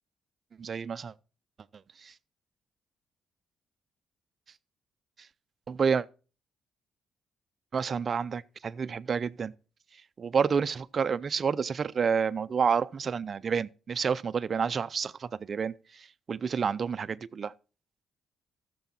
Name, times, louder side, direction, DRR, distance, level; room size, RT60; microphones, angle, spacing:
voice 1, 0.6-1.1 2.0-2.1 5.7-6.1 7.7-9.5 10.2-15.7 16.0-17.5, right 6 dB, 45° right, 0.5 m, -29 dB
14.5 x 7.0 x 4.3 m
cardioid pair, 90°, 0 cm